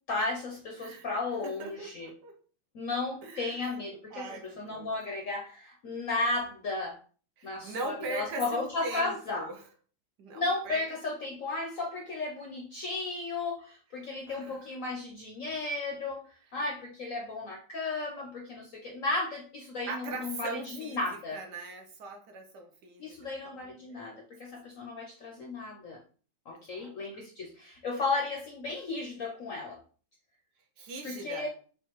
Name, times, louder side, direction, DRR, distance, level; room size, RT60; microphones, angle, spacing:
voice 1, 0.1-2.1 2.7-7.0 7.4-9.5 10.3-16.2 16.5-21.4 23.0-26.0 26.5-29.8 31.0-31.5, left 3 dB, 65° left, -1 dB, 0.8 m, -34 dB
voice 2, 0.7-1.1 1.4-2.4 3.2-3.8 4.1-4.9 7.4-9.7 10.2-10.8 14.3-14.7 19.9-23.2 23.4-23.6 23.9-24.2 26.5-26.9 30.8-31.5, right 3 dB, 70° right, 4 dB, 1.1 m, -41 dB
5.5 x 2.5 x 3.0 m, 0.41 s
omnidirectional pair, 2.1 m